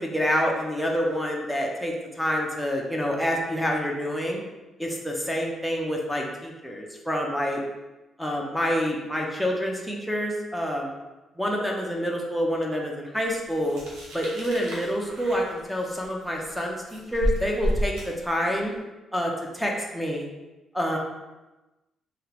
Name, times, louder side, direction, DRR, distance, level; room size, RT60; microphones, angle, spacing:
voice 1, 0.0-4.4 4.8-7.6 8.2-11.0 11.4-13.8 14.1-18.7 19.1-20.3 20.7-21.0, equal, ahead, 0 dB, 0.6 m, -27 dB
sound 1, 13.6-18.7, equal, 90° right, 0.9 m, -31 dB
3.4 x 2.9 x 3.0 m, 1.1 s
cardioid pair, 90°, 0 cm